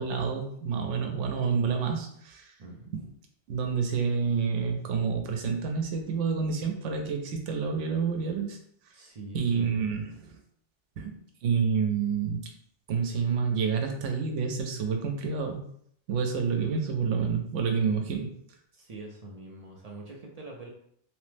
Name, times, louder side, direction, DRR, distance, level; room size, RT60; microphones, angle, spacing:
voice 1, 0.0-2.5 2.9-3.1 3.5-8.6 9.3-10.4 11.0-12.4 12.9-15.7 16.1-18.3, right 6 dB, 85° right, 3 dB, 0.9 m, -28 dB
voice 2, 2.6-2.9 8.9-9.7 18.7-20.7, right 2 dB, 50° right, -1 dB, 0.4 m, -44 dB
3.1 x 2.0 x 3.2 m, 0.66 s
omnidirectional pair, 1.2 m